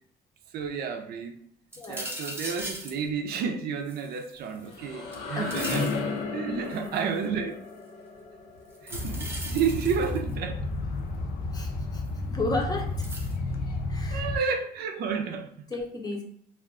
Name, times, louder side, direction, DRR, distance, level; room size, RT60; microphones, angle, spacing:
voice 1, 0.5-1.4 1.9-5.9 6.3-7.6 8.8-10.6 14.1-15.7, right 6 dB, 70° right, 0.5 m, -31 dB
sound 1, 1.7-3.0 3.9-4.8 5.1-6.0 6.7-7.2 8.8-10.3 12.1-12.2 13.0-13.4, right 1 dB, 15° right, 0.7 m, -38 dB
voice 2, 1.8-2.1 5.3-5.7 6.5-6.7 11.5-12.0 12.3-13.0 13.9-14.2 15.7-16.2, left 2 dB, 20° left, 0.7 m, -33 dB
sound 2, 4.4-10.2, left 3 dB, 85° left, 0.9 m, -35 dB
sound 3, 8.9-14.4, left 2 dB, 65° left, 0.6 m, -32 dB
2.4 x 2.3 x 3.6 m
cardioid pair, 110°, 17 cm